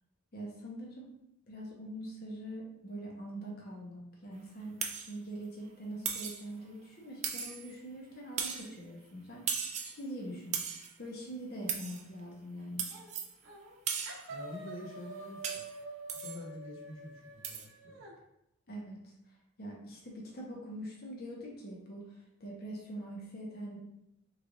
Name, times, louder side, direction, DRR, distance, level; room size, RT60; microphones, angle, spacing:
voice 1, 0.3-1.1 1.5-12.9 18.7-23.8, right 1 dB, 50° left, -2 dB, 0.7 m, -44 dB
sound 1, 4.8-5.1 6.0-6.5 7.2-7.7 8.4-8.7 9.5-10.0 10.5-10.9 11.7-12.0 12.8-13.3 13.9-14.3 15.4-15.7 16.1-16.4 17.4-17.7, right 7 dB, 35° right, 0.3 m, -36 dB
sound 2, 12.9-13.2 13.4-13.8 14.1-18.1, right 2 dB, 75° right, 0.7 m, -47 dB
voice 2, 14.3-15.6 16.1-18.0, left 1 dB, 80° left, -2 dB, 0.7 m, -47 dB
3.2 x 2.4 x 3.6 m, 0.83 s
head